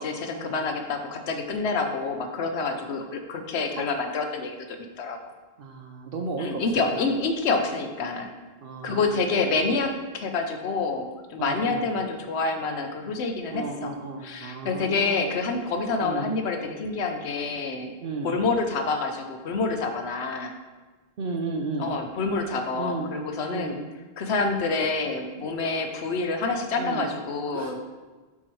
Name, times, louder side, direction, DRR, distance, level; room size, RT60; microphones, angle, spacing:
voice 1, 0.0-5.2 6.4-8.3 8.8-13.9 14.2-17.9 18.2-20.5 21.8-23.8 24.2-27.8, left 3 dB, 85° left, 5 dB, 1.0 m, -27 dB
voice 2, 5.6-7.0 8.6-9.3 11.4-11.9 13.5-15.3 16.0-16.3 18.0-18.4 21.2-21.9 22.8-23.1 23.5-23.8 26.8-27.1 27.5-27.8, right 3 dB, 65° right, 2 dB, 0.8 m, -34 dB
7.3 x 5.8 x 3.1 m, 1.3 s
omnidirectional pair, 1.1 m